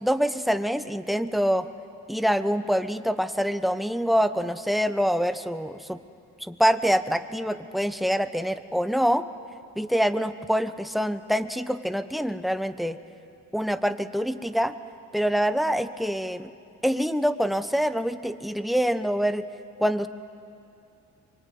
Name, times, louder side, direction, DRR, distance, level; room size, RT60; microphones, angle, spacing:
voice 1, 0.0-1.7 2.1-6.0 6.4-9.3 9.8-13.0 13.5-14.7 15.1-16.5 16.8-19.5 19.8-20.1, equal, ahead, 10 dB, 1.1 m, -25 dB
25.0 x 24.0 x 9.5 m, 2.6 s
cardioid pair, 90°, 30 cm